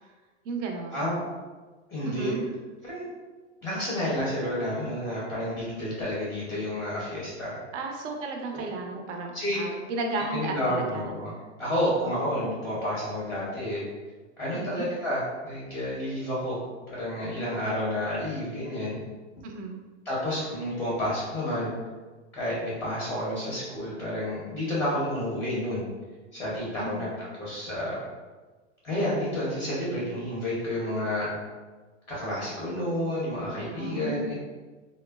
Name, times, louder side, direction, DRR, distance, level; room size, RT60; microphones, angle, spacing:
voice 1, 0.4-1.1 2.0-2.4 7.7-11.1 12.0-12.4 14.5-14.9 19.4-19.8 26.8-27.1 33.5-34.3, right 3 dB, 75° right, 3 dB, 0.6 m, -34 dB
voice 2, 1.9-2.5 2.8-3.1 3.6-7.6 8.5-8.6 9.3-9.6 10.3-11.3 11.6-13.8 14.4-16.6 16.9-19.0 20.0-21.7 22.3-25.8 26.3-28.0 28.8-31.3 32.1-34.3, left 1 dB, 5° left, -7 dB, 0.4 m, -30 dB
3.5 x 2.0 x 2.2 m, 1.3 s
supercardioid pair, 150°, 36 cm